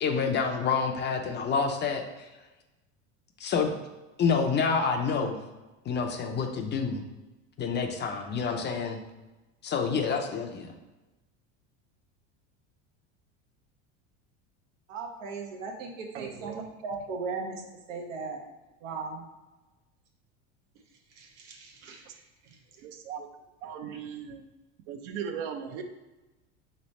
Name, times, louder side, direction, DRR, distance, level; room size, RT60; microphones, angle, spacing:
voice 1, 0.0-2.3 3.4-3.7 4.2-5.4 5.9-7.0 7.6-9.0 9.6-10.8, left 5 dB, 30° left, 4 dB, 0.5 m, -28 dB
voice 2, 14.9-17.6 17.9-18.4 18.8-19.2 21.2-22.6 23.9-24.0, right 4 dB, 85° right, 1 dB, 0.9 m, -38 dB
voice 3, 16.1-16.6 22.1-22.2 22.8-23.3 23.6-24.4 24.9-25.8, right 7 dB, 70° right, 6 dB, 0.6 m, -38 dB
3.4 x 3.2 x 4.1 m, 1.1 s
supercardioid pair, 105°, 37 cm